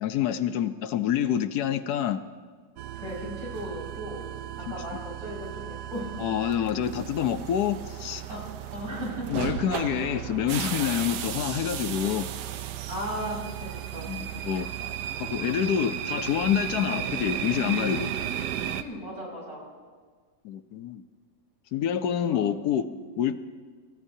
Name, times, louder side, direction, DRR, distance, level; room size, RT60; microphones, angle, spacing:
voice 1, 0.0-2.2 4.7-4.8 6.2-8.2 9.3-12.3 14.1-14.7 15.2-18.1 20.4-21.0 21.7-22.9 23.2-23.4, left 9 dB, 75° left, 10 dB, 1.2 m, -27 dB
sound 1, 2.8-18.8, right 10 dB, 80° right, 1.3 m, -34 dB
voice 2, 3.0-6.3 8.3-8.4 8.7-9.3 12.9-14.1 18.8-19.7 21.9-22.4 22.9-23.0, equal, 65° right, -5 dB, 6.0 m, -37 dB
29.0 x 15.0 x 2.7 m, 1.6 s
omnidirectional pair, 1.8 m